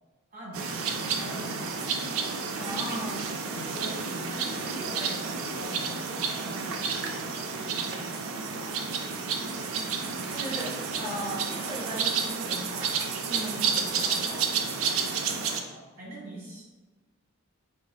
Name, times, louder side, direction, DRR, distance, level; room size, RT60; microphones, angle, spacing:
voice 1, 0.3-2.2 3.5-9.8 15.7-16.6, right 1 dB, 40° right, -6 dB, 1.3 m, -45 dB
sound 1, 0.5-15.6, right 5 dB, 65° right, 0.3 m, -31 dB
voice 2, 2.6-3.3 3.8-4.0 10.3-14.5, equal, 15° right, -9 dB, 0.5 m, -38 dB
3.8 x 3.1 x 2.2 m, 1.3 s
head